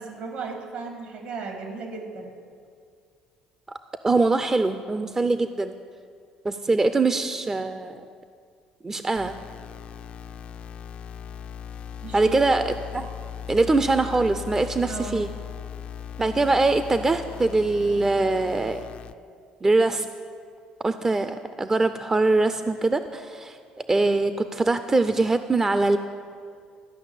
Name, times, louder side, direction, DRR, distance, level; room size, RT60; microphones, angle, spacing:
voice 1, 0.0-2.3 12.0-12.5 14.9-15.3, right 4 dB, 70° right, 2 dB, 2.5 m, -35 dB
voice 2, 4.0-5.7 6.4-8.1 8.8-9.4 12.1-13.1 13.5-15.3 16.2-18.9 19.6-20.1 20.8-23.6 23.9-26.0, right 3 dB, 20° right, 10 dB, 0.5 m, -23 dB
sound 1, 9.2-19.1, left 9 dB, 50° left, 0.4 m, -38 dB
13.0 x 5.7 x 8.2 m, 2.2 s
supercardioid pair, 80°, 2 cm